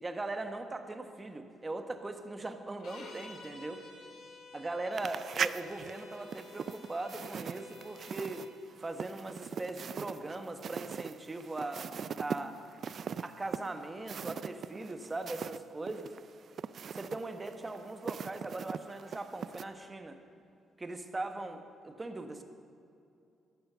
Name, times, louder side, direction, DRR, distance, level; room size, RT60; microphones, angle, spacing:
voice 1, 0.0-3.8 4.5-8.5 8.8-11.9 12.2-12.6 13.2-16.1 16.9-20.2 20.8-22.4, right 2 dB, 20° right, 6 dB, 1.3 m, -40 dB
sound 1, 2.8-8.6, left 3 dB, 65° left, 2.2 m, -52 dB
sound 2, 4.9-15.6 15.9-19.6, right 7 dB, 50° right, 0.4 m, -40 dB
14.0 x 11.5 x 6.9 m, 2.6 s
cardioid pair, 115°, 0 cm